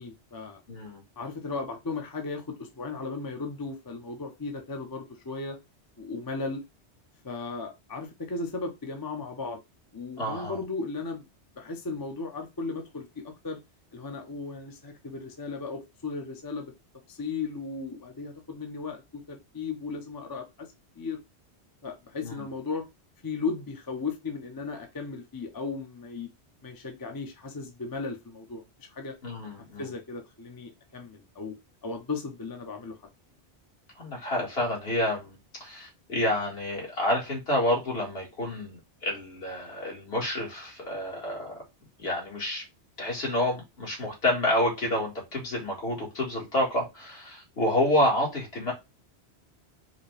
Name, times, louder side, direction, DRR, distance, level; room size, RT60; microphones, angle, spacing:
voice 1, 0.0-0.6 1.2-5.6 6.0-6.6 7.2-9.6 9.9-11.3 11.6-13.6 13.9-16.7 17.1-20.5 21.0-21.2 21.8-22.8 23.2-26.3 26.6-29.1 29.6-31.5 31.8-33.0, left 4 dB, 25° left, 0.6 m, -36 dB
voice 2, 0.7-1.0 10.2-10.6 22.2-22.4 29.2-29.9 34.0-41.6 42.0-42.6 43.0-48.7, left 1 dB, 65° left, 1.9 m, -29 dB
4.9 x 2.2 x 3.2 m
omnidirectional pair, 1.1 m